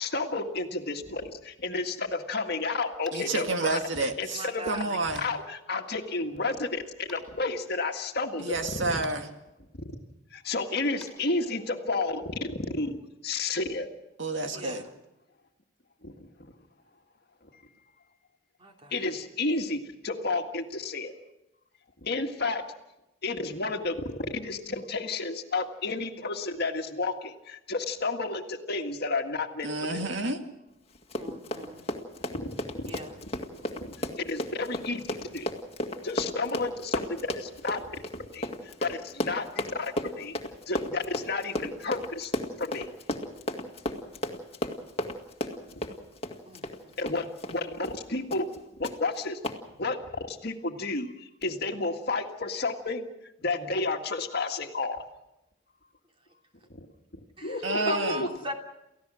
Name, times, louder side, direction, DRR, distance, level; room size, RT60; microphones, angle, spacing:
voice 1, 0.0-8.5 10.3-12.2 12.7-13.0 13.2-13.9 16.0-16.1 17.5-17.6 18.9-21.1 22.0-22.7 23.2-30.1 32.8-32.9 34.3-35.5 36.0-37.8 38.3-38.5 38.8-40.4 40.7-42.3 42.6-42.9 47.0-48.5 48.8-49.4 49.8-53.1 53.4-55.0 57.4-58.1, left 3 dB, 55° left, 4 dB, 1.9 m, -31 dB
Tap, 3.0-3.3 5.1-5.3 7.1-7.2 9.0-9.2 11.0-11.1, left 1 dB, ahead, 7.1 m, -47 dB
voice 2, 3.1-5.3 8.4-9.3 14.2-14.9 29.6-30.4 57.6-58.3, right 2 dB, 65° right, 5 dB, 2.2 m, -30 dB
voice 3, 4.3-5.0 14.5-14.9 18.6-19.0 31.1-31.8 32.9-33.1 46.5-47.0 57.4-57.6 57.9-58.5, right 1 dB, 30° right, 2 dB, 3.1 m, -39 dB
Run, 30.9-47.6 47.8-48.0 48.3-48.6 48.8-48.9 49.4-49.6, left 1 dB, 30° left, 2.0 m, -34 dB
29.5 x 15.5 x 6.3 m, 0.92 s
head